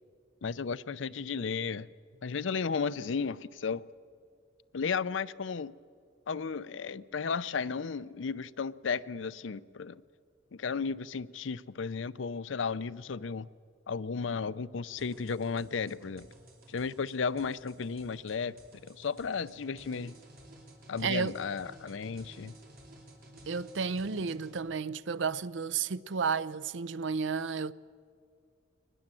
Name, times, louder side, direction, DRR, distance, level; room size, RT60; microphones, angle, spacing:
voice 1, 0.4-1.9 2.2-3.9 4.7-5.7 6.3-10.0 10.5-13.5 13.9-16.3 16.7-18.6 18.8-20.1 20.9-22.5, left 5 dB, 70° left, 0.5 m, -34 dB
sound 1, 15.0-24.6, right 1 dB, 50° right, 3.5 m, -54 dB
voice 2, 21.0-21.3 23.5-27.7, right 5 dB, 65° right, 0.5 m, -32 dB
23.0 x 20.0 x 7.5 m
head